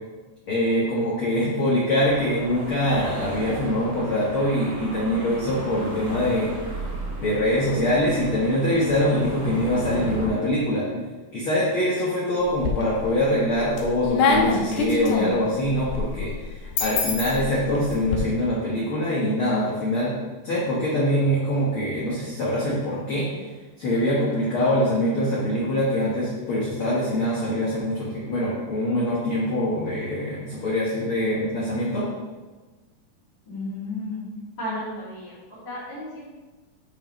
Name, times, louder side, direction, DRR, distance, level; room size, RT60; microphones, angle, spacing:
voice 1, 0.5-6.5 7.2-11.0 11.3-23.4 23.8-32.1, left 1 dB, 55° left, -7 dB, 1.6 m, -24 dB
sound 1, 2.0-10.3, right 1 dB, 55° right, 2.5 m, -34 dB
sound 2, 12.4-13.1 13.5-18.2, left 4 dB, 80° left, 2.4 m, -25 dB
voice 2, 33.5-34.2 34.6-36.3, left 1 dB, 30° left, -12 dB, 2.9 m, -33 dB
10.5 x 4.8 x 3.1 m, 1.2 s
omnidirectional pair, 3.9 m